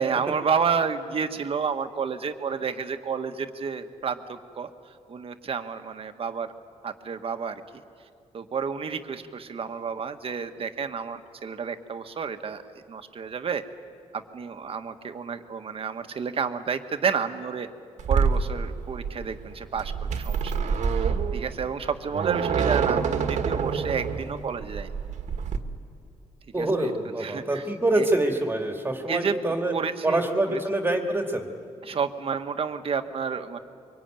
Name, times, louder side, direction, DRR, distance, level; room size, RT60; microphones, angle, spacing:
voice 1, 0.0-4.7 5.1-6.5 6.8-7.6 8.3-12.6 12.9-13.6 14.1-17.7 18.1-20.6 20.9-24.9 26.6-26.9 27.2-27.7 28.0-28.1 29.1-29.3 29.7-30.6 31.8-33.6, right 6 dB, 50° right, 7 dB, 1.5 m, -30 dB
sound 1, 18.0-25.6, right 6 dB, 75° right, 1.7 m, -27 dB
voice 2, 26.5-29.7 30.0-31.5, right 2 dB, 20° right, 3 dB, 2.2 m, -25 dB
24.0 x 24.0 x 9.1 m, 2.4 s
cardioid pair, 95°, 12 cm